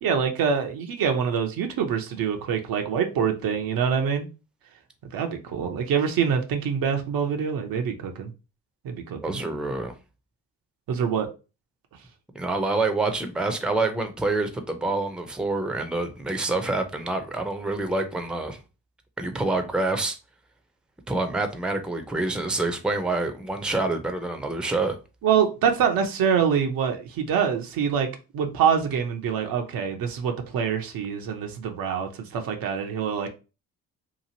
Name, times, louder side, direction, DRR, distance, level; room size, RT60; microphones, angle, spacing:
voice 1, 0.0-4.3 5.1-8.3 8.8-9.4 10.9-11.3 25.2-28.1 28.3-33.3, right 7 dB, 70° right, 0.7 m, -25 dB
voice 2, 9.2-9.9 12.3-18.6 19.2-20.2 21.1-25.0, right 2 dB, ahead, 0.6 m, -27 dB
2.9 x 2.4 x 2.7 m
supercardioid pair, 55°, 37 cm